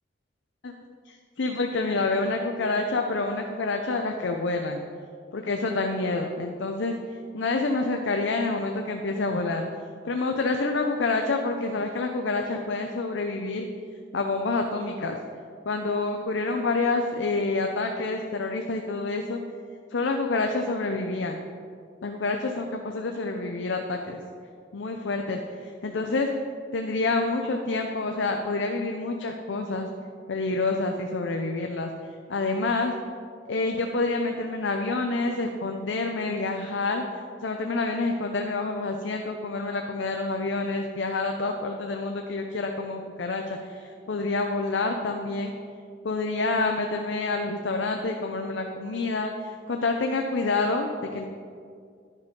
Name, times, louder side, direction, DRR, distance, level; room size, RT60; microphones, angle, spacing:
voice 1, 1.1-4.8 5.3-6.9 7.3-9.6 10.0-13.7 14.1-15.2 15.7-19.4 19.9-21.4 22.0-24.2 24.7-26.3 26.7-29.9 30.3-31.9 32.3-32.9 33.5-37.0 37.4-45.5 46.0-51.3, left 3 dB, 75° left, 3 dB, 0.6 m, -28 dB
10.5 x 5.2 x 5.3 m, 2.2 s
head